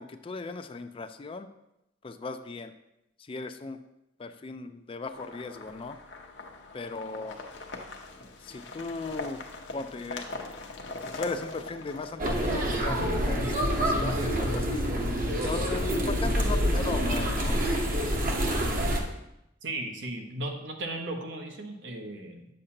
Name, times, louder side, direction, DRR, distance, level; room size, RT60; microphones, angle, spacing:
voice 1, 0.0-1.5 2.0-2.7 3.2-3.8 4.2-6.0 6.7-7.4 8.4-9.4 9.7-10.3 11.0-13.5 13.8-14.8 15.4-17.6, left 3 dB, 30° left, 9 dB, 0.4 m, -37 dB
sound 1, 5.1-13.1, left 3 dB, 70° left, 0.8 m, -42 dB
sound 2, 12.2-19.0, equal, 50° right, 1.0 m, -27 dB
voice 2, 19.6-22.5, right 2 dB, 80° right, 3 dB, 1.0 m, -36 dB
8.6 x 6.5 x 2.8 m, 0.86 s
head